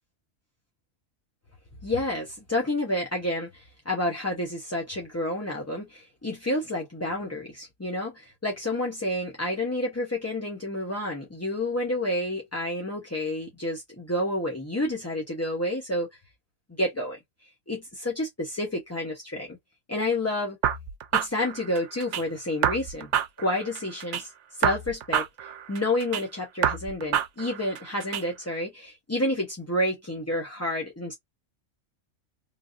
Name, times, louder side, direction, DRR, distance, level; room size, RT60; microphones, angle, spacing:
voice 1, 1.8-16.1 16.8-17.2 17.7-19.6 19.9-20.6 21.1-23.1 23.4-24.3 24.6-25.3 25.7-31.1, left 1 dB, 20° left, 0.5 m, -29 dB
sound 1, 20.6-22.2 22.6-24.2 24.6-26.2 26.6-28.2, right 9 dB, 75° right, 0.9 m, -28 dB
3.2 x 2.4 x 2.4 m
omnidirectional pair, 1.3 m